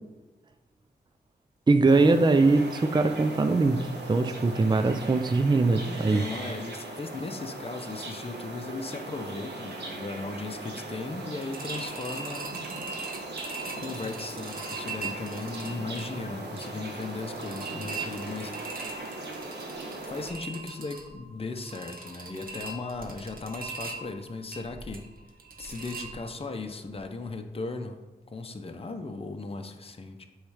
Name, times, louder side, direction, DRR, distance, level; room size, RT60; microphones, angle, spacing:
voice 1, 1.7-6.2, right 3 dB, 25° right, 8 dB, 0.5 m, -22 dB
sound 1, 1.9-20.3, right 2 dB, 85° right, 1.3 m, -39 dB
voice 2, 5.8-12.5 13.8-18.7 20.0-25.1 25.6-30.2, left 3 dB, 35° left, 5 dB, 0.7 m, -37 dB
sound 2, 11.4-26.6 26.9-27.0 27.4-27.5, right 3 dB, 60° right, 1.1 m, -41 dB
8.2 x 3.2 x 4.9 m, 1.2 s
cardioid pair, 50°, 17 cm